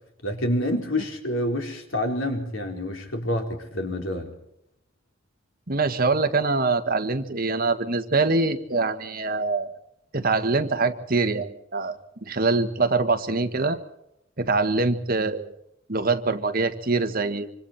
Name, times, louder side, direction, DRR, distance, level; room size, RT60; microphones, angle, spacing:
voice 1, 0.2-4.3, left 1 dB, 90° left, 3 dB, 4.2 m, -27 dB
voice 2, 5.7-9.7 10.1-13.8 14.4-15.5 15.9-17.5, right 3 dB, 50° right, 8 dB, 1.7 m, -24 dB
26.5 x 25.5 x 4.4 m, 0.81 s
head